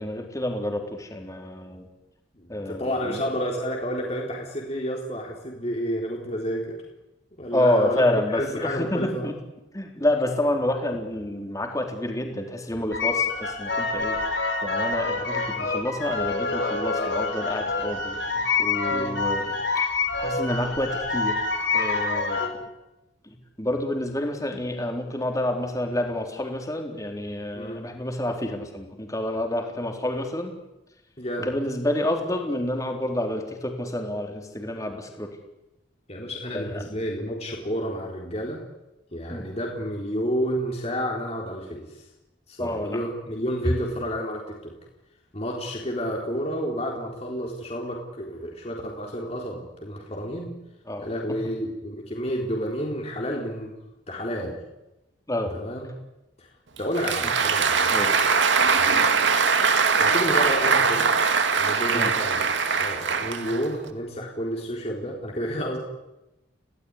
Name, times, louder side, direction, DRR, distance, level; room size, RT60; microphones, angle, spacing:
voice 1, 0.0-1.9 2.5-3.2 7.5-9.3 9.7-14.2 14.6-18.2 18.6-19.6 20.2-21.4 21.7-22.5 23.6-30.5 31.4-35.3 36.5-36.8 39.3-39.5 42.6-43.0 50.9-51.1 55.3-55.5 57.9-58.1 61.9-62.1, left 1 dB, 20° left, 3 dB, 4.0 m, -28 dB
voice 2, 2.3-6.8 7.4-9.3 18.9-19.2 27.5-27.8 31.2-31.5 36.1-38.6 39.1-42.0 42.5-44.7 45.3-50.5 51.0-53.7 54.1-54.6 55.5-55.9 56.4-56.5 56.8-57.9 58.2-58.4 58.8-59.2 60.0-61.1 61.6-62.4 62.8-65.8, equal, 35° left, -1 dB, 4.0 m, -30 dB
sound 1, 12.9-22.5, left 4 dB, 70° left, 5.5 m, -27 dB
Applause, 56.8-63.9, right 5 dB, 80° right, 2.3 m, -22 dB
29.0 x 18.0 x 9.9 m, 0.96 s
head